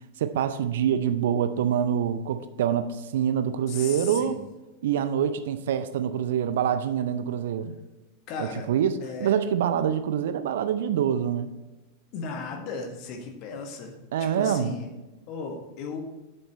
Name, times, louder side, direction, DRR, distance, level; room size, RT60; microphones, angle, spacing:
voice 1, 0.2-4.4 4.8-7.8 8.4-11.5 14.1-14.7, right 9 dB, 55° right, 11 dB, 0.6 m, -25 dB
voice 2, 3.7-4.4 8.3-8.7 9.0-9.3 12.1-14.9 15.3-16.0, left 4 dB, 40° left, 4 dB, 1.6 m, -36 dB
8.0 x 7.3 x 4.2 m, 1.1 s
figure-of-eight pair, 90°, 0 cm